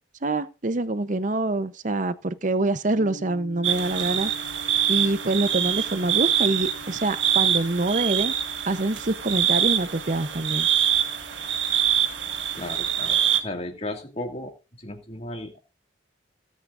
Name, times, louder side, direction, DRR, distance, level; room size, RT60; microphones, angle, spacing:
voice 1, 0.2-4.3 4.9-8.3 8.7-10.7, right 2 dB, 45° right, 0.8 m, -25 dB
sound 1, 3.0-14.3, left 1 dB, 60° left, 4.2 m, -46 dB
sound 2, 3.6-13.4, right 9 dB, 80° right, 1.8 m, -25 dB
voice 2, 12.5-15.6, left 1 dB, 35° left, 2.2 m, -35 dB
17.0 x 8.5 x 2.6 m
head